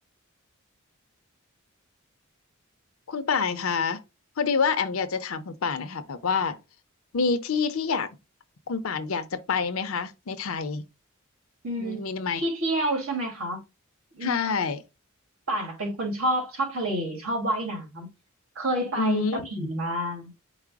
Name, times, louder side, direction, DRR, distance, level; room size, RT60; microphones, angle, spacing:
voice 1, 3.1-4.0 4.4-6.6 7.1-8.1 8.7-10.8 11.8-12.5 14.2-14.8 19.0-19.7, left 5 dB, 70° left, 0.6 m, -27 dB
voice 2, 11.6-12.1 12.4-13.6 14.1-14.4 15.5-18.1 18.6-20.3, right 1 dB, 75° right, 1.9 m, -29 dB
4.8 x 2.0 x 4.6 m
head